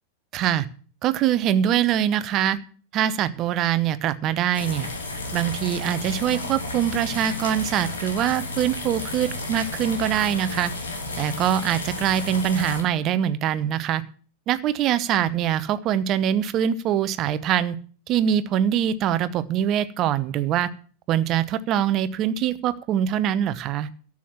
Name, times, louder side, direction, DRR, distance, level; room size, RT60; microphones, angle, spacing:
voice 1, 0.3-0.7 1.0-2.6 2.9-4.9 5.3-10.7 11.2-14.0 14.5-17.8 18.1-20.7 21.1-23.9, right 10 dB, 35° right, 15 dB, 0.9 m, -23 dB
sound 1, 4.5-12.8, left 2 dB, 70° left, 3.0 m, -32 dB
13.0 x 7.5 x 7.4 m, 0.43 s
figure-of-eight pair, 90°, 0 cm